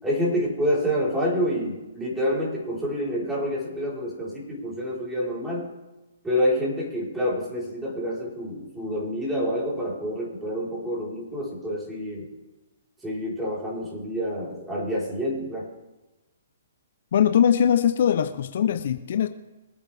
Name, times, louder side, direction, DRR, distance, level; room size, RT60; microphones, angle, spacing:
voice 1, 0.0-5.7 6.2-12.2 13.0-15.7, equal, 10° right, -5 dB, 4.5 m, -27 dB
voice 2, 17.1-19.3, left 9 dB, 60° left, 10 dB, 0.8 m, -21 dB
23.5 x 8.8 x 3.6 m, 1.1 s
hypercardioid pair, 135°, 0 cm